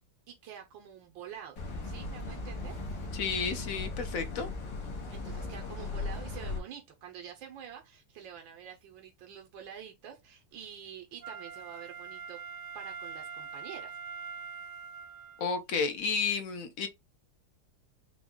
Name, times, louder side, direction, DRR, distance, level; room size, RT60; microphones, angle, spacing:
voice 1, 0.3-1.6 1.8-2.8 5.1-12.4 12.7-14.0, right 9 dB, 90° right, 1.6 m, -47 dB
sound 1, 1.6-6.6, left 3 dB, 75° left, 2.1 m, -38 dB
voice 2, 3.1-4.5 15.4-16.9, left 5 dB, 60° left, 1.0 m, -32 dB
Wind instrument woodwind instrument, 11.2-15.5 16.0-16.1, right 5 dB, 70° right, 1.3 m, -43 dB
6.0 x 2.3 x 3.6 m
omnidirectional pair, 2.0 m